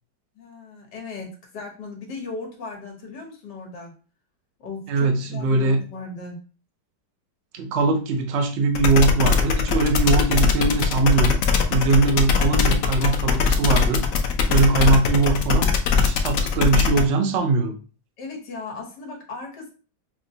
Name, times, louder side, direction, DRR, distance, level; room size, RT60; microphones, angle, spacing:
voice 1, 0.3-3.9 4.6-6.4 18.2-19.7, left 4 dB, 65° left, 1 dB, 1.7 m, -36 dB
voice 2, 4.9-5.8 7.5-11.4 11.7-14.0 14.5-17.8, right 3 dB, 90° right, 4 dB, 0.6 m, -21 dB
sound 1, 8.7-17.0, left 6 dB, 90° left, 0.7 m, -20 dB
5.7 x 2.2 x 2.7 m, 0.36 s
omnidirectional pair, 2.0 m